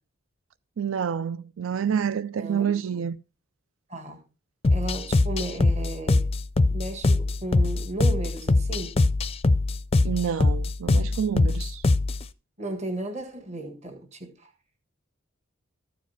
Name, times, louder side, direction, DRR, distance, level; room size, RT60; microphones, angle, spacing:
voice 1, 0.8-3.2 10.0-11.8, right 7 dB, 80° right, 0.4 m, -28 dB
voice 2, 2.4-2.7 3.9-4.2 4.7-6.3 6.7-9.0 12.6-14.5, right 2 dB, 35° right, 1.6 m, -34 dB
sound 1, 4.6-12.3, left 2 dB, 30° left, 0.4 m, -22 dB
13.5 x 5.0 x 5.6 m
head